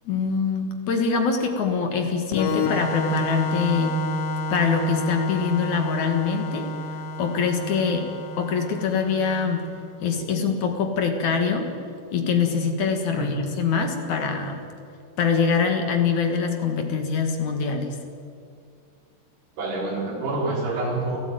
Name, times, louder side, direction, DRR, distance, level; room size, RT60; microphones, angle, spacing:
voice 1, 0.1-3.9 4.5-6.7 7.2-8.1 8.4-9.6 10.0-11.7 12.1-14.6 15.2-17.9, left 5 dB, 55° left, 5 dB, 2.7 m, -24 dB
Organ, 2.3-9.9, left 1 dB, 85° left, 4.1 m, -29 dB
voice 2, 19.6-21.2, right 2 dB, 70° right, -2 dB, 6.8 m, -27 dB
29.0 x 14.5 x 9.3 m, 2.4 s
omnidirectional pair, 4.9 m